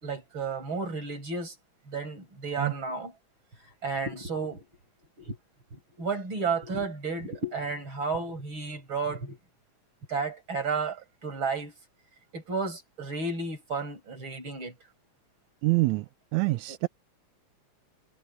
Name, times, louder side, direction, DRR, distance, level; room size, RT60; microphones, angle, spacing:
voice 1, 0.0-1.5 1.9-3.1 3.8-4.7 5.2-5.4 5.7-9.4 10.1-11.7 12.3-14.7 16.7-16.9, right 4 dB, 40° right, 6.5 m, -32 dB
voice 2, 15.6-16.0 16.3-16.9, right 22 dB, 80° right, 1.9 m, -25 dB
omnidirectional pair, 3.4 m